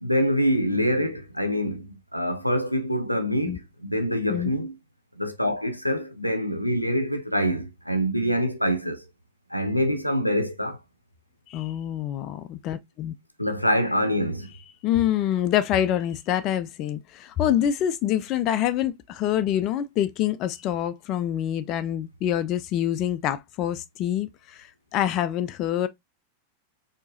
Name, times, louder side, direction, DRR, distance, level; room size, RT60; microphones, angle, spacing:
voice 1, 0.0-4.7 5.2-9.0 9.5-10.8 13.4-14.5, equal, 90° left, 0.6 m, -25 dB
voice 2, 11.5-13.1 14.8-25.9, left 11 dB, 35° left, 0.4 m, -26 dB
4.5 x 2.9 x 2.7 m
figure-of-eight pair, 90°, 0 cm